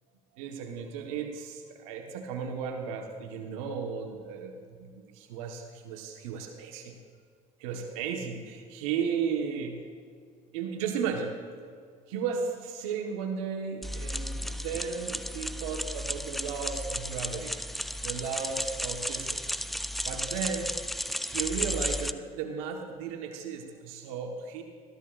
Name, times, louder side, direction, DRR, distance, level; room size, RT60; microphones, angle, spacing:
voice 1, 0.3-7.0 7.6-9.8 10.5-11.4 12.1-17.6 18.0-19.6 20.0-20.7 21.2-24.6, right 6 dB, 80° right, 3 dB, 1.3 m, -35 dB
sound 1, 13.8-22.1, equal, ahead, 0.5 m, -34 dB
20.5 x 14.0 x 2.5 m, 2.1 s
hypercardioid pair, 70°, 18 cm